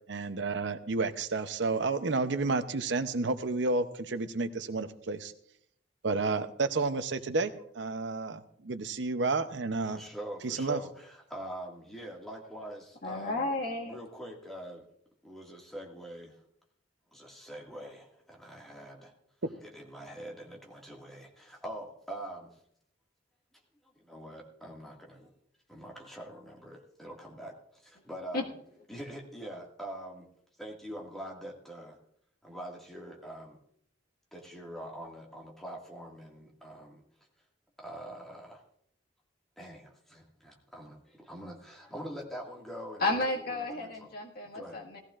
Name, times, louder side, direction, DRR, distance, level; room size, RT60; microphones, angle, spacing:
voice 1, 0.1-5.3 6.0-10.0 10.4-10.8, right 3 dB, 70° right, 10 dB, 0.7 m, -31 dB
voice 2, 9.9-13.5 13.8-14.9 15.2-16.4 17.1-19.1 19.6-22.6 23.8-25.3 25.7-28.5 28.9-30.3 30.6-32.0 32.4-33.6 34.3-37.0 37.8-38.6 39.6-44.1 44.5-44.8, right 1 dB, ahead, -2 dB, 1.9 m, -44 dB
voice 3, 13.0-14.0 28.3-28.5 43.0-45.0, left 2 dB, 55° left, 0 dB, 1.8 m, -32 dB
18.0 x 14.5 x 2.5 m, 0.69 s
head